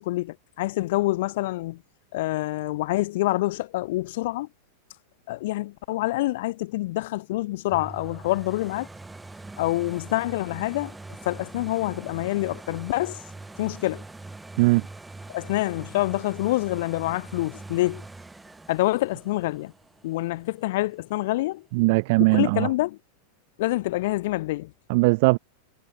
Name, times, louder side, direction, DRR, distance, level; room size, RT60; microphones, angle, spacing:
voice 1, 0.0-1.8 2.1-4.5 5.3-8.9 9.6-11.0 11.2-13.2 13.6-14.0 15.3-18.0 18.7-19.7 20.0-21.7 22.2-23.0 23.6-24.7, left 18 dB, 50° left, 0.3 m, -26 dB
sound 1, 7.7-21.4 21.9-22.0, right 2 dB, 10° right, 1.8 m, -43 dB
voice 2, 21.7-22.7 24.9-25.4, right 25 dB, 50° right, 0.4 m, -19 dB
figure-of-eight pair, 90°, 0 cm